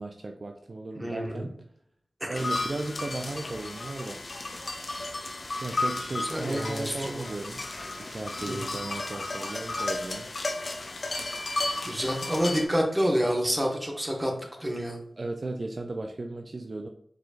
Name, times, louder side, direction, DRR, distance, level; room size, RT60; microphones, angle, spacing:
voice 1, 0.0-1.5 2.3-4.2 5.6-7.6 8.0-10.3 15.2-16.9, right 2 dB, 50° right, 4 dB, 0.4 m, -35 dB
voice 2, 1.0-1.5 2.2-2.4 6.2-7.3 8.5-8.7 11.1-11.2 11.8-14.3 14.6-15.0, equal, 15° right, 0 dB, 1.3 m, -28 dB
sound 1, 2.3-12.7, left 2 dB, 60° left, 0.7 m, -33 dB
4.7 x 4.4 x 2.4 m, 0.70 s
wide cardioid pair, 65°, 0 cm